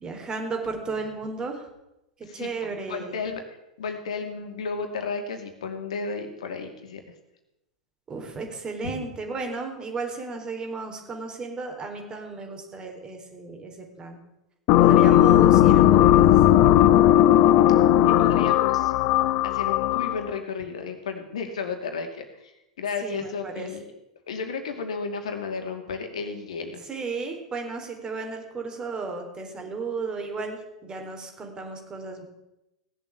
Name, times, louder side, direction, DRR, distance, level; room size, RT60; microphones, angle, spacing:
voice 1, 0.0-1.7 2.3-3.1 8.1-14.2 14.8-16.4 23.0-23.7 26.9-32.2, right 4 dB, 20° right, 3 dB, 3.7 m, -34 dB
voice 2, 2.2-3.4 3.8-7.0 8.8-8.9 18.0-18.9 19.4-23.9 24.3-26.8, left 5 dB, 65° left, 6 dB, 2.3 m, -33 dB
sound 1, 14.7-20.3, left 12 dB, 45° left, 0.6 m, -17 dB
17.5 x 7.6 x 8.5 m, 0.90 s
figure-of-eight pair, 90°, 4 cm